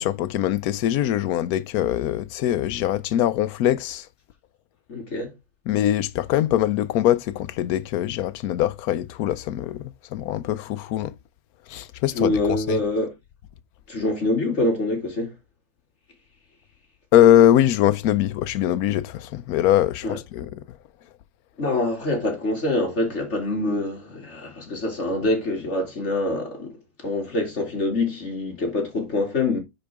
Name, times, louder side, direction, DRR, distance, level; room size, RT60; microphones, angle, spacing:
voice 1, 0.0-4.1 5.7-11.1 11.7-12.8 17.1-20.8, left 12 dB, 85° left, 1.1 m, -22 dB
voice 2, 4.9-5.3 12.1-13.1 13.9-15.3 20.0-20.2 21.6-26.7 27.0-29.6, left 2 dB, 50° left, 2.6 m, -25 dB
10.0 x 4.4 x 3.4 m
omnidirectional pair, 1.5 m